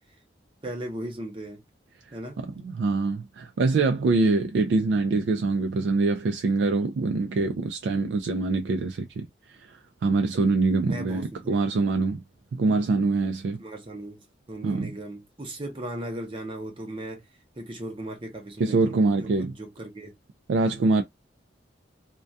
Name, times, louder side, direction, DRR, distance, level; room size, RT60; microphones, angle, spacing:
voice 1, 0.6-1.6 2.1-2.4 10.8-11.6 13.6-17.2 17.6-20.1, right 1 dB, 30° right, 0.6 m, -37 dB
voice 2, 2.1-12.2 12.5-13.6 14.6-14.9 18.6-19.5 20.5-21.0, right 3 dB, 75° right, 0.3 m, -24 dB
2.2 x 2.2 x 2.5 m
head